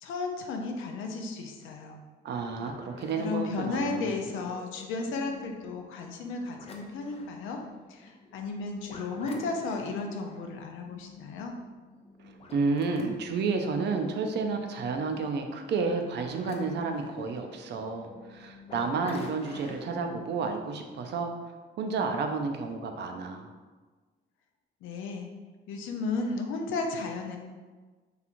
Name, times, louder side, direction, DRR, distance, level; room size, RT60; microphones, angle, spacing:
voice 1, 0.0-2.0 3.2-7.6 7.9-11.6 24.8-25.3 25.7-27.4, left 3 dB, 90° left, 2 dB, 0.4 m, -34 dB
voice 2, 2.2-4.2 12.2-21.3 21.8-23.5, right 4 dB, 60° right, 4 dB, 0.4 m, -31 dB
sound 1, 2.5-20.2, left 3 dB, 30° left, 0.4 m, -49 dB
2.9 x 2.3 x 2.5 m, 1.3 s
cardioid pair, 90°, 20 cm